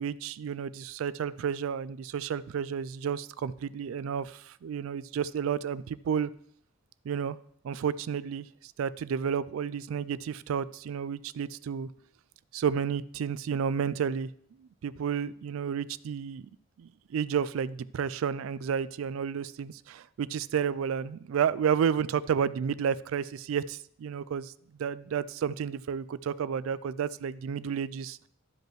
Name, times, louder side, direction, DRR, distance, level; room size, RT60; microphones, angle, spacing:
voice 1, 0.0-6.3 7.1-7.4 7.6-8.5 8.8-11.9 12.5-14.3 14.6-16.5 16.8-24.5 24.8-28.2, right 7 dB, 80° right, 17 dB, 0.3 m, -31 dB
12.0 x 5.2 x 3.0 m, 0.66 s
head